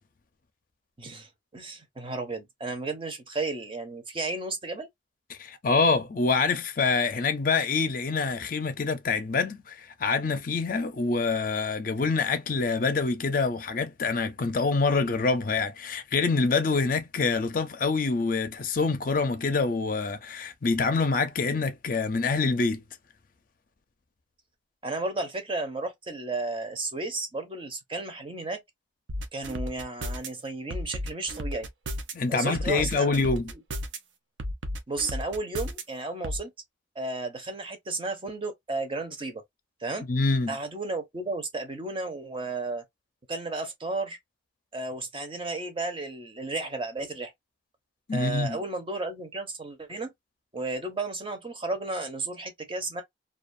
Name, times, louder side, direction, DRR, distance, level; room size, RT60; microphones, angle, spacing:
voice 1, 1.0-4.9 24.8-28.6 29.3-31.7 32.3-33.1 34.9-36.5 37.0-39.4 39.8-40.1 40.5-42.8 43.3-44.2 44.7-47.3 48.1-50.1 50.5-53.0, right 2 dB, 30° right, 0.6 m, -33 dB
voice 2, 5.4-22.8 32.1-33.5 40.1-40.6 48.1-48.6, left 4 dB, 45° left, 0.5 m, -26 dB
sound 1, 29.1-30.3 30.7-32.1 32.6-34.0 34.4-35.8 36.2-36.4, equal, 80° right, 0.6 m, -33 dB
2.5 x 2.3 x 2.5 m
head